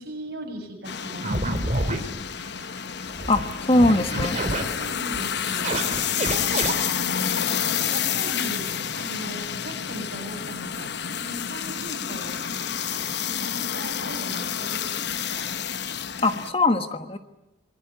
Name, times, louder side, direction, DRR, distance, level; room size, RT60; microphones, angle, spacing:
voice 1, 0.0-2.0 3.3-3.4 4.8-7.2 7.5-8.7 8.9-12.4 12.9-15.5 16.3-16.5, right 1 dB, 55° right, 1 dB, 8.0 m, -39 dB
sound 1, 0.8-16.5, left 8 dB, 60° left, 0.9 m, -29 dB
sound 2, 1.2-2.0 2.5-2.6 2.8-2.9 3.1-3.5 3.7-4.6 5.0-5.2 5.5-6.7, right 1 dB, 35° right, 3.8 m, -27 dB
voice 2, 3.3-4.4 16.2-17.2, left 2 dB, 30° left, 9 dB, 1.3 m, -21 dB
27.0 x 22.0 x 9.5 m, 0.94 s
head